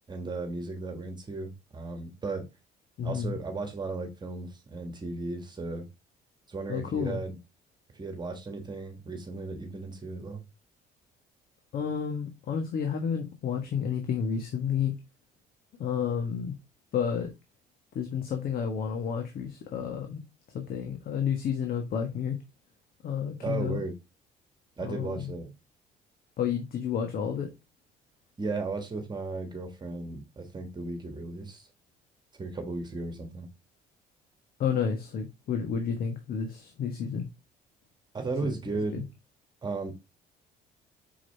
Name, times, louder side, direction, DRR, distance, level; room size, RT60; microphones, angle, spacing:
voice 1, 0.1-2.5 3.0-5.9 6.5-7.4 7.9-10.4 23.4-23.9 24.8-25.5 28.4-31.7 32.3-33.5 38.1-39.0 39.6-39.9, right 3 dB, 25° right, 1.5 m, -35 dB
voice 2, 3.0-3.3 6.7-7.2 11.7-14.9 15.8-16.5 16.9-17.3 17.9-20.2 20.5-22.4 23.0-23.8 24.8-25.3 26.4-27.5 34.6-37.3 38.4-38.5 38.9-39.0, left 7 dB, 60° left, 1.4 m, -31 dB
6.2 x 4.9 x 3.4 m
cardioid pair, 110°, 17 cm